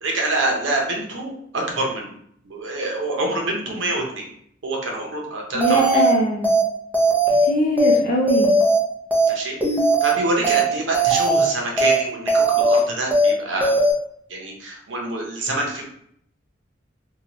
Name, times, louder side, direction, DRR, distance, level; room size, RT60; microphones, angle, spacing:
voice 1, 0.0-2.1 2.4-4.2 4.6-6.0 9.3-9.6 10.0-13.7 14.3-15.9, right 2 dB, 80° right, 0 dB, 0.8 m, -26 dB
voice 2, 5.5-6.5 7.3-8.5, equal, 45° left, -2 dB, 0.5 m, -21 dB
sound 1, 5.6-6.1 6.4-6.6 6.9-7.5 7.8-8.0 8.3-8.8 9.1-9.3 9.6-10.1 10.4-10.6 10.9-11.5 11.8-12.0 12.3-12.8 13.1-13.3 13.6-13.9, right 2 dB, 10° right, 0.5 m, -18 dB
2.8 x 2.2 x 2.9 m, 0.68 s
head